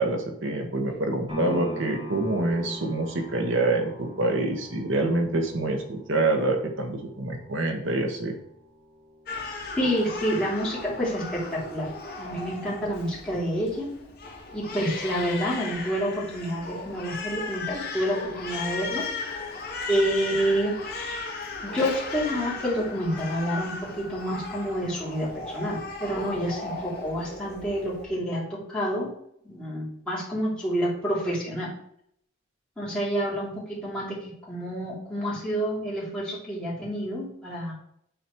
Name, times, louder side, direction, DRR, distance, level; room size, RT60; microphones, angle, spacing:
voice 1, 0.0-8.4, right 2 dB, 70° right, 3 dB, 1.3 m, -26 dB
sound 1, 1.3-9.4 9.9-10.0, right 1 dB, 25° right, 2.4 m, -42 dB
Crying sobbing, 9.3-28.1, left 3 dB, 45° left, 1.7 m, -36 dB
voice 2, 9.8-11.9 12.2-13.9 14.5-19.0 19.9-21.3 21.6-29.1 29.4-31.7 32.8-37.7, equal, 5° left, -9 dB, 3.1 m, -28 dB
9.0 x 4.2 x 4.6 m, 0.71 s
head